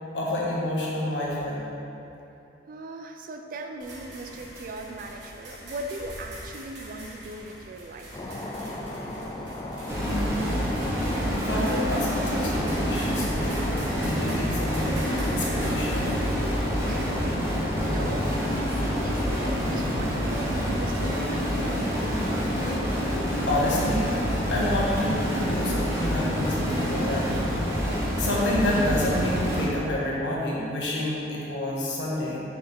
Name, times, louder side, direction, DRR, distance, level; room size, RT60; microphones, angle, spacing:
voice 1, 0.0-1.7 10.0-10.4 11.3-13.7 13.9-16.5 23.5-24.1 24.5-32.4, left 1 dB, 80° left, -5 dB, 1.3 m, -29 dB
voice 2, 2.7-8.2 16.9-18.3 18.8-22.0, right 2 dB, 50° right, 4 dB, 0.4 m, -39 dB
sound 1, 3.8-16.3, right 1 dB, 80° right, 1.3 m, -43 dB
sound 2, 8.1-28.0, left 1 dB, 20° left, 0.4 m, -36 dB
sound 3, 9.9-29.7, equal, 15° right, 1.0 m, -27 dB
6.1 x 5.0 x 3.6 m, 2.9 s
head